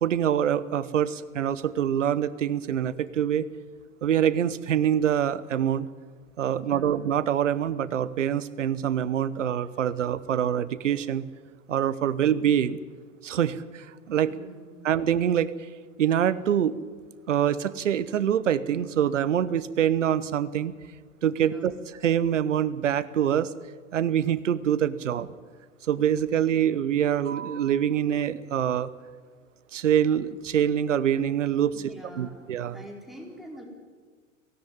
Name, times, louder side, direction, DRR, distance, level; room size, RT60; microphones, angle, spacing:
voice 1, 0.0-3.5 4.0-5.9 6.4-11.2 11.7-12.8 13.2-14.3 14.8-15.5 16.0-16.8 17.3-20.7 21.2-21.7 22.0-23.5 23.9-25.3 25.9-28.9 29.7-31.7 32.2-32.8, right 9 dB, 65° right, 17 dB, 1.1 m, -25 dB
voice 2, 6.6-7.0 14.2-15.0 21.4-21.8 31.7-32.5 32.7-33.6, right 1 dB, ahead, 1 dB, 4.2 m, -46 dB
17.0 x 17.0 x 9.9 m, 1.5 s
figure-of-eight pair, 90°, 39 cm